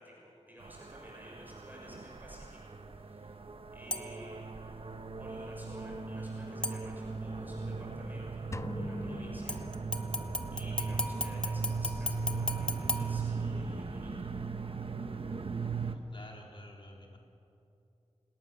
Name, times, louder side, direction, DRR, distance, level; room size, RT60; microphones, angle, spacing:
voice 1, 0.0-3.4 3.7-4.8 5.2-10.2 10.5-14.3, equal, 15° right, -3 dB, 6.4 m, -53 dB
sound 1, 0.6-16.0, right 4 dB, 50° right, 1.2 m, -38 dB
sound 2, 3.9-4.3 6.6-7.3 9.5-13.9 14.3-14.4, left 1 dB, 10° left, 1.3 m, -38 dB
sound 3, 8.5-10.6, left 2 dB, 25° left, 0.6 m, -43 dB
voice 2, 16.1-17.2, left 1 dB, 45° left, 0 dB, 4.0 m, -50 dB
29.5 x 18.5 x 7.3 m, 2.7 s
wide cardioid pair, 100°, 12 cm